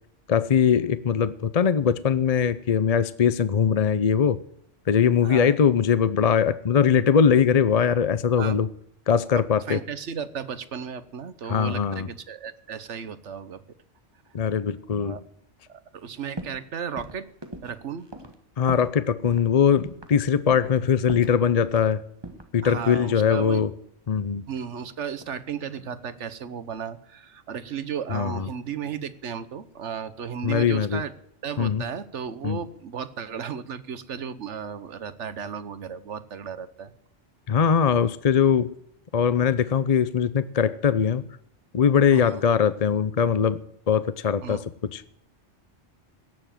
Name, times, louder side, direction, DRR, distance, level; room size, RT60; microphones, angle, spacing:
voice 1, 0.3-4.4 4.9-8.7 9.1-9.8 11.5-12.1 14.3-15.2 18.6-22.0 22.5-23.7 24.1-24.4 28.1-28.5 30.4-31.0 31.6-31.8 32.4-32.6 37.5-38.8 39.1-41.3 41.7-43.6 43.9-44.6 44.9-45.0, left 7 dB, 45° left, 15 dB, 0.6 m, -21 dB
voice 2, 5.2-5.6 8.4-8.6 9.7-13.6 15.0-15.2 15.7-17.3 17.6-18.1 22.6-23.6 24.5-31.1 31.4-36.9 42.1-42.4 44.4-44.6, right 7 dB, 75° right, 14 dB, 1.3 m, -34 dB
sound 1, 16.4-16.7 17.0-19.0 19.2-19.5 19.9-20.2 20.5-20.8 21.1-21.9 22.2-23.6 24.5-25.5 25.7-26.2, right 2 dB, 20° right, 1.4 m, -41 dB
17.5 x 7.1 x 9.0 m, 0.71 s
omnidirectional pair, 1.2 m